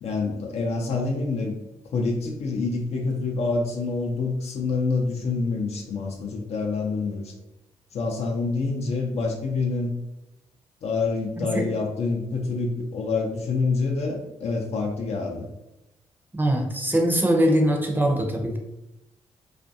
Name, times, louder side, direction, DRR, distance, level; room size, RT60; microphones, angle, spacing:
voice 1, 0.0-1.6 1.8-7.3 7.9-9.9 10.8-15.5, left 3 dB, 60° left, 1 dB, 0.4 m, -27 dB
voice 2, 16.3-18.6, equal, 15° right, 1 dB, 0.5 m, -22 dB
2.4 x 2.2 x 2.6 m, 0.89 s
supercardioid pair, 60°, 12 cm